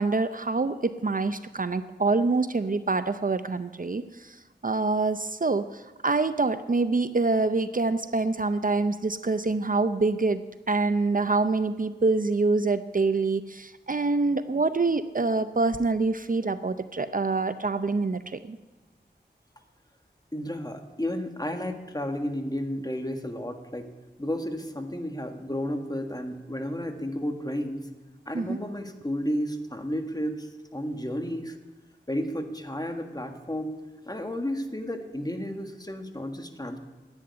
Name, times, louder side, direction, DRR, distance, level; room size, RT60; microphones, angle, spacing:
voice 1, 0.0-4.4 4.6-10.4 10.7-18.6 28.3-28.6, right 3 dB, 50° right, 12 dB, 0.6 m, -26 dB
voice 2, 20.3-23.9 24.2-27.9 28.3-31.6 32.1-33.7 34.0-36.8, equal, 20° left, 5 dB, 1.7 m, -32 dB
10.5 x 9.3 x 9.6 m, 1.2 s
wide cardioid pair, 45°, 19 cm